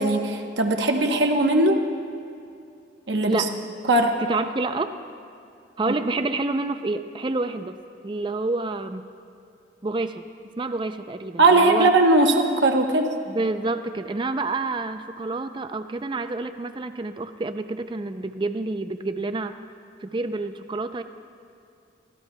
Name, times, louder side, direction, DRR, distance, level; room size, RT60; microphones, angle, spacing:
voice 1, 0.0-1.8 3.1-3.5 3.8-4.2 5.9-6.0 11.4-13.1, right 2 dB, 70° right, 3 dB, 0.9 m, -19 dB
voice 2, 4.2-5.0 5.8-7.8 8.0-9.1 9.8-10.3 10.6-11.9 13.3-19.6 20.0-21.0, right 2 dB, 25° right, 9 dB, 0.4 m, -28 dB
24.0 x 14.5 x 2.2 m, 2.5 s
head